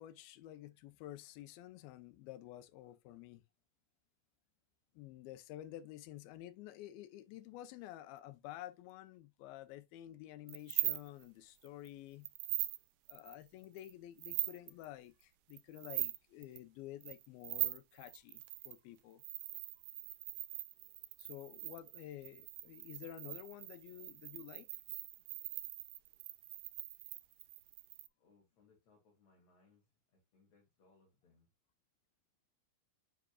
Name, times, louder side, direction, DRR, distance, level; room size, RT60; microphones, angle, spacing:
voice 1, 0.0-3.4 4.9-12.3 13.1-19.2 21.2-24.7, left 13 dB, 85° left, 2.5 m, -51 dB
sound 1, 10.5-11.2 11.6-11.9 12.2-12.8 13.1-13.9 14.2-14.9 15.5-16.2 16.4-16.6 17.0-18.8 19.2-28.1, right 17 dB, 90° right, 1.8 m, -41 dB
voice 2, 28.2-29.9 30.1-31.5, left 4 dB, 50° left, 2.9 m, -70 dB
9.9 x 5.1 x 2.3 m
omnidirectional pair, 4.3 m